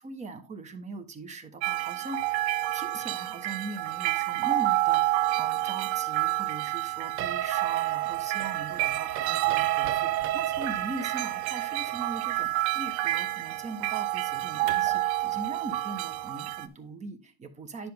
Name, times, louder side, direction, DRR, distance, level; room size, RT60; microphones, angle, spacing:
voice 1, 0.0-2.4 2.7-17.9, right 3 dB, 20° right, 8 dB, 1.3 m, -40 dB
sound 1, 1.6-16.7, right 17 dB, 80° right, 0.8 m, -29 dB
sound 2, 7.2-15.0, right 12 dB, 40° right, 0.7 m, -34 dB
10.5 x 5.9 x 3.5 m, 0.26 s
supercardioid pair, 150°, 33 cm